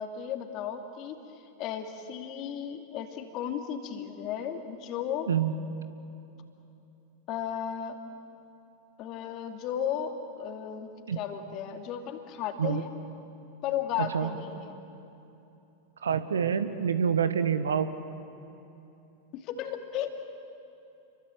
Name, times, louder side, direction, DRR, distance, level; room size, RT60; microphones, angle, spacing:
voice 1, 0.0-5.3 7.3-8.0 9.0-10.9 11.2-12.9 13.6-14.8 19.3-20.1, left 9 dB, 40° left, 5 dB, 2.6 m, -34 dB
voice 2, 14.0-14.3 16.0-17.9, right 7 dB, 70° right, 11 dB, 1.3 m, -27 dB
30.0 x 23.5 x 7.9 m, 2.9 s
figure-of-eight pair, 90°, 0 cm